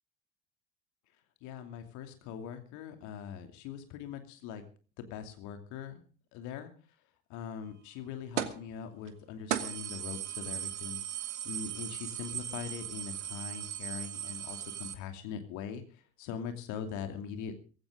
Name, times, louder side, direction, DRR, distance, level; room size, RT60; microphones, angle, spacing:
voice 1, 1.4-4.6 5.0-6.0 6.3-6.7 7.3-11.0 11.4-17.5, left 7 dB, 55° left, 7 dB, 2.8 m, -42 dB
sound 1, 8.4-8.7 9.1-9.2 9.5-14.9, right 10 dB, 75° right, 1.4 m, -37 dB
17.5 x 16.0 x 3.8 m, 0.37 s
figure-of-eight pair, 65°, 36 cm